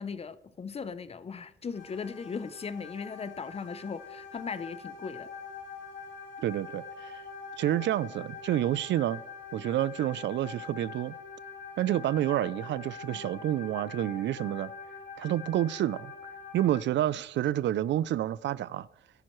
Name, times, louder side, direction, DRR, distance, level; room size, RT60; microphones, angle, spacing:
voice 1, 0.0-5.3, left 5 dB, 30° left, 0.6 m, -38 dB
sound 1, 1.7-16.8, left 5 dB, 80° left, 2.4 m, -44 dB
voice 2, 6.4-7.2 7.6-9.2 9.5-11.1 11.8-14.7 15.2-16.1 16.5-18.9, right 12 dB, 70° right, 0.4 m, -29 dB
12.0 x 10.5 x 3.1 m
cardioid pair, 115°, 20 cm